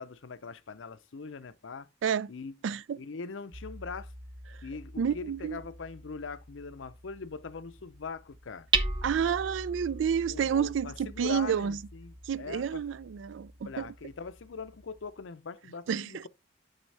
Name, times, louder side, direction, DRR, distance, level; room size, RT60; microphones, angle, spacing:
voice 1, 0.0-1.9 2.3-2.5 3.0-4.1 4.6-8.7 10.3-12.8 13.7-16.3, left 5 dB, 90° left, 0.6 m, -41 dB
voice 2, 2.0-2.3 2.6-3.0 4.5-4.6 5.0-5.6 9.0-11.8 12.2-13.9 15.9-16.3, right 7 dB, 80° right, 0.3 m, -30 dB
Hammer, 3.5-15.2, right 3 dB, 25° right, 0.7 m, -39 dB
8.9 x 4.3 x 3.3 m
head